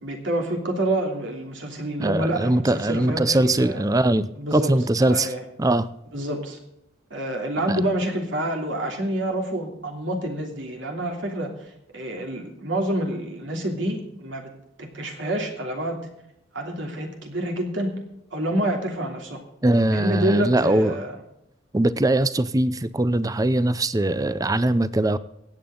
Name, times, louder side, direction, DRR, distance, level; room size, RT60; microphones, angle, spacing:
voice 1, 0.0-3.8 4.4-4.7 5.0-5.4 6.1-6.6 7.1-14.5 14.8-16.1 16.5-18.0 18.3-19.4 19.9-21.2, right 1 dB, 75° right, 2 dB, 3.0 m, -28 dB
voice 2, 2.0-5.3 5.6-5.9 7.7-7.8 19.6-21.0 21.7-25.2, right 1 dB, 20° right, 14 dB, 0.6 m, -21 dB
24.0 x 8.7 x 3.8 m, 0.83 s
head